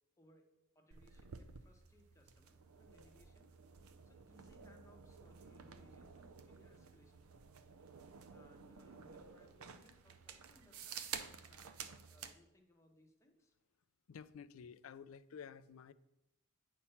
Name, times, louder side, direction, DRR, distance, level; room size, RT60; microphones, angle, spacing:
voice 1, 0.2-0.5 0.7-3.5 3.8-7.4 8.3-13.5, left 1 dB, 15° left, 1.1 m, -67 dB
sound 1, 0.9-12.4, right 7 dB, 85° right, 0.5 m, -52 dB
voice 2, 14.1-15.9, left 7 dB, 70° left, 0.4 m, -52 dB
8.5 x 4.5 x 5.6 m
head